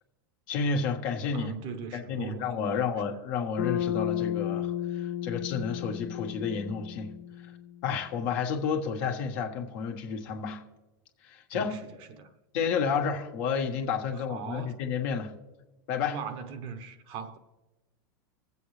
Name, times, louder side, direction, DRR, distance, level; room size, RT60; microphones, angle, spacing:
voice 1, 0.5-1.5 1.9-7.1 7.8-10.6 11.3-11.8 12.5-15.3 15.9-16.2, left 6 dB, 60° left, 1.4 m, -31 dB
voice 2, 1.3-2.9 11.5-12.3 14.3-14.9 16.1-17.4, right 6 dB, 50° right, 0.9 m, -40 dB
Bass guitar, 3.6-7.9, left 11 dB, 75° left, 0.9 m, -33 dB
20.0 x 7.7 x 3.3 m
hypercardioid pair, 110°, 12 cm